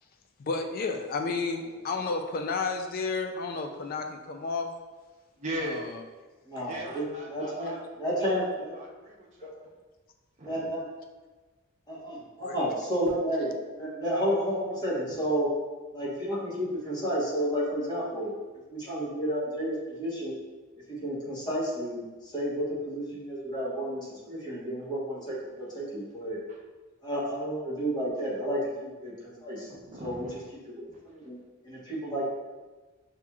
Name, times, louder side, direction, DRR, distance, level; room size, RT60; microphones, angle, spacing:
voice 1, 0.4-4.8 5.6-6.0 6.6-6.7 12.4-12.6, left 4 dB, 45° left, 5 dB, 0.3 m, -32 dB
voice 2, 5.4-5.9 6.7-7.8 8.7-9.5 10.4-10.6 15.1-15.2 26.5-26.6 29.7-30.3 30.9-31.0, right 1 dB, 35° right, -3 dB, 0.8 m, -39 dB
voice 3, 6.5-8.8 10.4-10.9 11.9-15.5 15.9-18.3 18.7-20.4 20.9-26.4 27.0-29.7 30.0-30.4 30.7-31.4 31.6-32.3, equal, 20° left, -7 dB, 1.1 m, -31 dB
6.0 x 2.9 x 2.3 m, 1.3 s
head